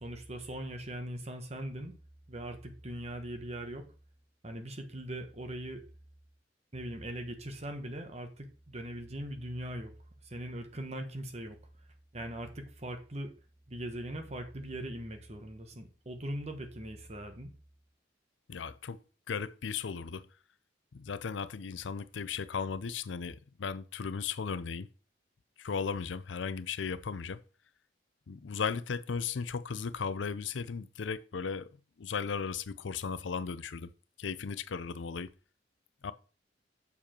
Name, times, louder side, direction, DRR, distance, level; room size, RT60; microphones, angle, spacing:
voice 1, 0.0-1.9 2.3-3.8 4.4-5.8 6.7-9.9 10.2-11.6 12.1-13.3 13.7-17.5, right 1 dB, 35° right, 1.2 m, -40 dB
voice 2, 18.5-19.0 19.3-20.2 20.9-24.9 25.6-27.4 28.3-31.7 32.0-33.9 34.2-35.3 36.0-36.1, left 6 dB, 85° left, 0.5 m, -36 dB
7.0 x 4.8 x 4.4 m
head